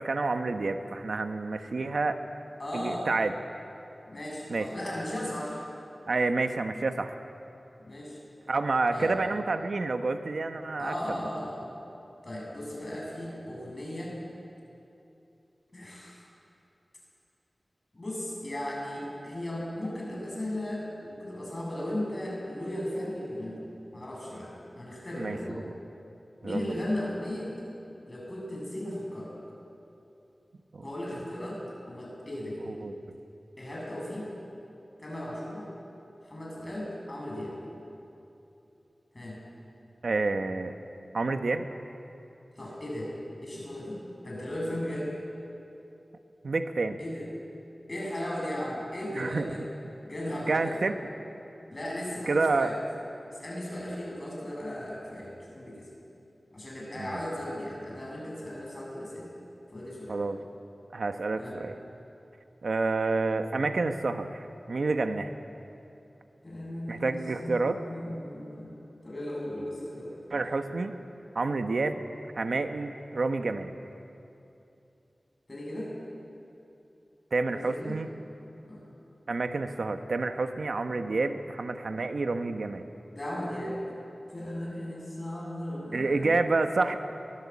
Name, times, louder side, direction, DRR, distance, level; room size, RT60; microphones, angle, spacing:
voice 1, 0.0-2.2 2.7-3.3 4.5-4.7 6.1-7.2 8.5-10.9 25.2-25.8 26.4-26.8 30.7-30.8 32.6-32.9 40.0-40.7 41.1-41.6 46.4-47.0 49.1-49.5 50.5-51.0 52.3-52.7 57.0-57.2 60.1-60.4 60.9-61.7 62.6-65.3 66.9-67.8 70.3-71.0 71.3-72.0 72.4-73.7 77.3-78.1 79.3-82.9 85.9-86.9, right 3 dB, 80° right, 7 dB, 1.2 m, -29 dB
voice 2, 2.6-3.1 4.1-5.6 7.8-8.2 8.9-9.1 10.8-11.7 12.2-14.2 15.7-16.3 17.9-23.6 23.9-25.7 26.4-27.5 28.1-29.3 30.8-31.6 31.9-32.7 33.6-34.3 35.0-35.7 36.2-37.6 39.1-39.4 42.6-43.1 43.4-45.1 47.0-47.3 47.9-49.6 50.0-50.8 51.7-52.8 53.3-55.9 56.5-59.3 59.7-60.2 61.3-61.6 66.4-70.4 75.5-75.9 77.5-78.0 78.6-78.9 83.1-83.8 84.3-86.4, left 1 dB, 35° left, -4 dB, 7.4 m, -36 dB
23.0 x 20.0 x 8.5 m, 2.8 s
wide cardioid pair, 80°, 0 cm